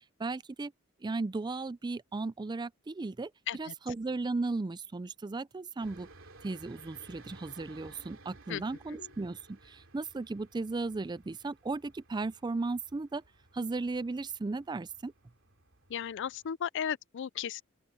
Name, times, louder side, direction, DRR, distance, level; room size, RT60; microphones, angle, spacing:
voice 1, 0.2-0.7 1.0-6.1 6.4-13.2 13.5-15.1, right 3 dB, 20° right, 0.4 m, -36 dB
sound 1, 5.8-16.5, right 3 dB, 70° right, 3.0 m, -57 dB
voice 2, 15.9-17.6, left 8 dB, 60° left, 0.4 m, -35 dB
open air
head